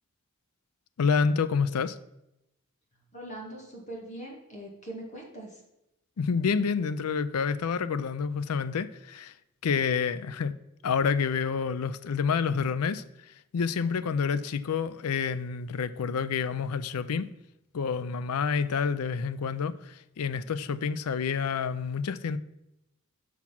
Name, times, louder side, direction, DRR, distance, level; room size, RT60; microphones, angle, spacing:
voice 1, 1.0-2.0 6.2-9.3 9.6-10.5 10.8-13.0 13.5-17.3 17.7-22.4, left 6 dB, 90° left, 0.5 m, -28 dB
voice 2, 3.1-5.6, right 1 dB, 35° left, 2.1 m, -41 dB
6.0 x 6.0 x 5.9 m
head